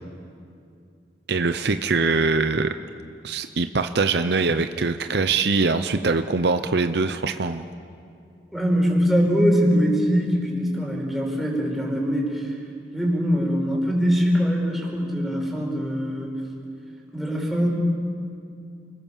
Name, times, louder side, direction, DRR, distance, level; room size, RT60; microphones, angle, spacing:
voice 1, 1.3-2.7 3.2-7.6, right 4 dB, 65° right, 9 dB, 0.8 m, -23 dB
voice 2, 8.5-12.5 12.9-16.4 17.1-17.7, equal, ahead, -2 dB, 5.2 m, -22 dB
29.0 x 21.5 x 7.3 m, 2.4 s
head